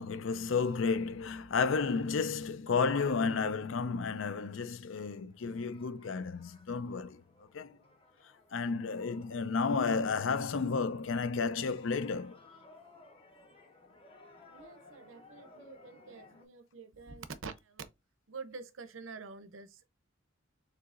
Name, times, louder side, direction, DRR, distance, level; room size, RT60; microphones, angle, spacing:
voice 1, 0.0-7.2 7.5-7.8 8.5-12.4, left 5 dB, 70° left, 0.5 m, -32 dB
sound 1, 5.1-16.5, left 2 dB, 25° left, 0.9 m, -59 dB
voice 2, 14.5-17.9 18.3-19.9, right 4 dB, 75° right, 0.7 m, -47 dB
6.7 x 2.8 x 2.5 m
head